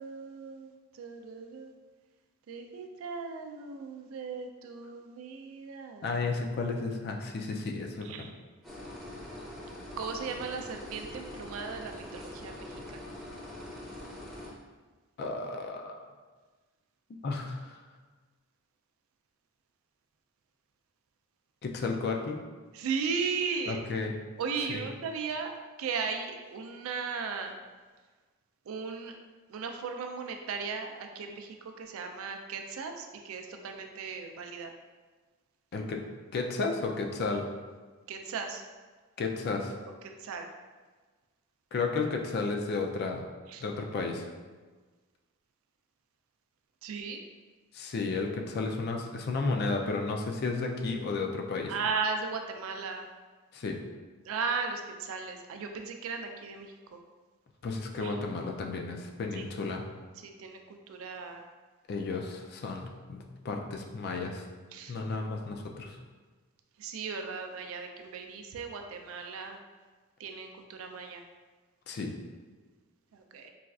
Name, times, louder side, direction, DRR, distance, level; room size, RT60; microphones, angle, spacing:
voice 1, 0.0-1.7 2.5-6.2 8.0-8.3 10.0-13.0 22.7-23.8 24.4-25.5 25.8-27.5 28.7-29.1 29.5-34.7 38.1-38.6 40.2-40.5 43.5-43.6 46.8-47.2 51.7-53.1 54.2-57.0 58.0-58.1 59.3-59.4 60.2-60.6 60.9-61.4 64.7-64.9 66.8-69.6 70.2-71.2 73.1-73.5, right 5 dB, 70° right, 4 dB, 0.3 m, -36 dB
voice 2, 6.0-8.3 15.2-16.0 17.2-17.8 21.6-22.4 23.7-24.1 24.7-24.8 35.7-36.0 36.3-37.5 39.2-39.7 41.7-43.2 43.6-44.3 47.7-51.7 53.5-53.8 57.6-59.8 61.9-64.4 64.9-66.0 71.9-72.1, left 3 dB, 50° left, 3 dB, 0.3 m, -33 dB
sound 1, 8.6-14.5, left 1 dB, ahead, 0.6 m, -43 dB
4.0 x 2.3 x 2.3 m, 1.4 s
head